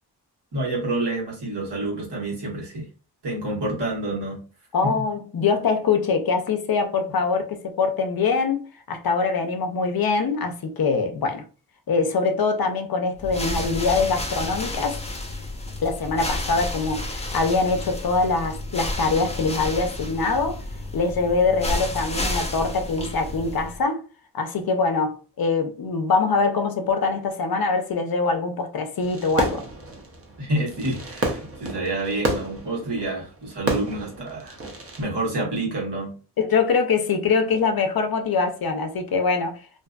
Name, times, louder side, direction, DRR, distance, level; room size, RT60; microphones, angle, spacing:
voice 1, 0.5-2.9 3.2-4.4 4.8-4.9 30.4-34.6 35.0-36.1, right 2 dB, 80° right, 1.3 m, -28 dB
voice 2, 4.7-8.6 8.9-11.4 11.9-15.0 15.8-20.6 20.9-24.0 24.3-29.6 36.4-39.6, left 4 dB, 60° left, 0.5 m, -23 dB
sound 1, 13.2-23.8, left 1 dB, 15° left, 0.5 m, -31 dB
Fireworks, 29.0-35.0, right 2 dB, 35° right, 0.6 m, -30 dB
2.6 x 2.4 x 2.2 m
wide cardioid pair, 70°, 41 cm